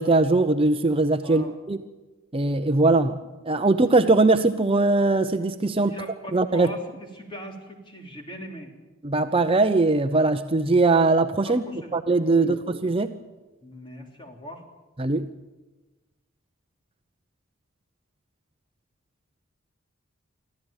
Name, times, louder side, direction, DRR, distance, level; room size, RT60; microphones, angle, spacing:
voice 1, 0.0-1.8 2.3-3.2 3.4-5.9 6.3-6.7 9.0-11.6 11.9-13.1 15.0-15.3, right 3 dB, 25° right, 8 dB, 0.7 m, -21 dB
voice 2, 1.2-1.6 5.7-6.8 7.1-8.7 11.4-12.0 12.3-12.7 13.6-14.7, equal, 25° left, 2 dB, 3.5 m, -40 dB
25.0 x 15.0 x 9.0 m, 1.2 s
head